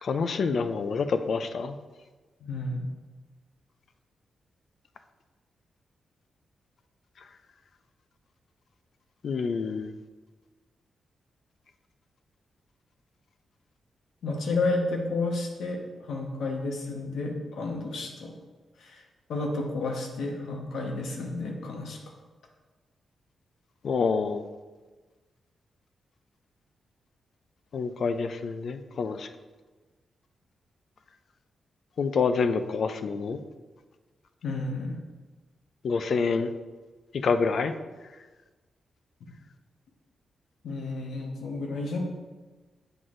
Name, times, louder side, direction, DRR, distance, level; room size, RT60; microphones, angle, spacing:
voice 1, 0.0-1.8 9.2-9.9 23.8-24.4 27.7-29.3 32.0-33.4 35.8-36.5 37.2-37.7, left 5 dB, 60° left, 9 dB, 0.4 m, -27 dB
voice 2, 2.4-2.8 14.2-18.3 18.8-19.0 19.3-22.0 34.4-35.0 39.2-39.3 40.6-42.0, left 2 dB, 80° left, 1 dB, 1.0 m, -31 dB
7.8 x 5.9 x 2.5 m, 1.3 s
wide cardioid pair, 120°, 0 cm